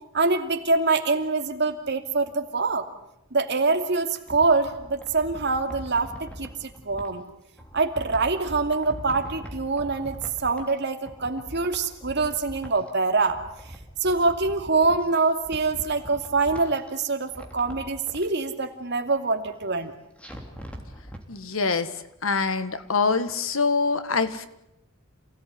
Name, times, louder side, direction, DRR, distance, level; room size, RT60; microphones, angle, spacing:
voice 1, 0.1-2.8 3.3-7.2 7.7-13.4 14.0-19.9, right 3 dB, 55° right, 5 dB, 2.6 m, -25 dB
sound 1, 4.0-7.1 7.6-10.8 11.0-12.9 13.2-15.1 15.4-16.9 17.3-18.3 20.2-21.2 21.6-21.7, equal, 5° left, 3.4 m, -41 dB
voice 2, 21.3-21.9 22.2-24.5, left 4 dB, 80° left, 11 dB, 1.7 m, -24 dB
28.0 x 17.5 x 9.6 m, 0.84 s
head